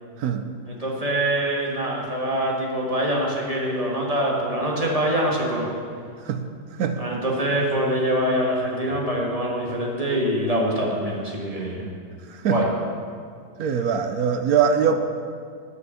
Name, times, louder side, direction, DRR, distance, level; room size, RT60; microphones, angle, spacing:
voice 1, 0.7-5.7 7.0-11.8 12.5-12.7, right 1 dB, 25° right, -2 dB, 1.4 m, -24 dB
voice 2, 13.6-15.0, right 7 dB, 70° right, 8 dB, 1.0 m, -22 dB
9.8 x 5.7 x 7.5 m, 2.1 s
omnidirectional pair, 1.8 m